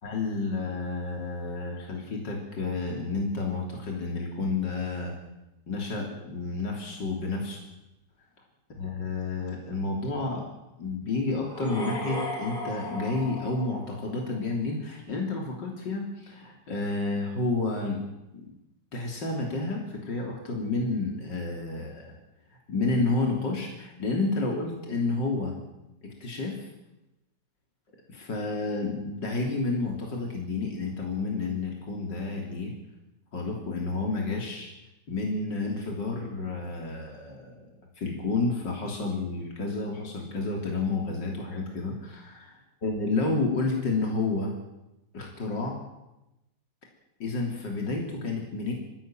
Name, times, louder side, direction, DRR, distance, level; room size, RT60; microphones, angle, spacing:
voice 1, 0.0-5.1 5.7-7.7 8.8-10.5 10.8-18.0 18.3-18.5 18.9-22.1 22.7-25.5 26.0-26.7 28.1-32.7 33.3-34.7 35.1-44.5 45.1-45.8 47.2-48.7, left 3 dB, 75° left, 0 dB, 4.0 m, -30 dB
sound 1, 11.4-14.5, equal, 30° left, 5.0 m, -36 dB
26.5 x 15.5 x 9.1 m, 0.95 s
omnidirectional pair, 1.9 m